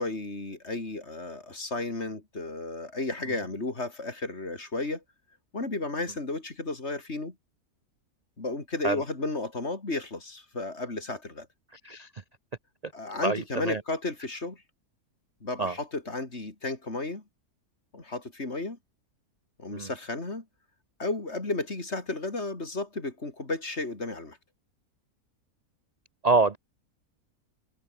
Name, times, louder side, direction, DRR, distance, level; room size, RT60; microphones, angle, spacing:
voice 1, 0.0-5.0 5.5-7.4 8.4-11.5 12.9-14.6 15.4-17.2 17.9-18.8 19.6-20.5 21.0-24.4, left 2 dB, 45° left, 3.9 m, -33 dB
voice 2, 13.2-13.8 15.6-15.7 19.7-19.9 26.2-26.6, right 3 dB, 35° right, 0.8 m, -25 dB
omnidirectional pair, 1.6 m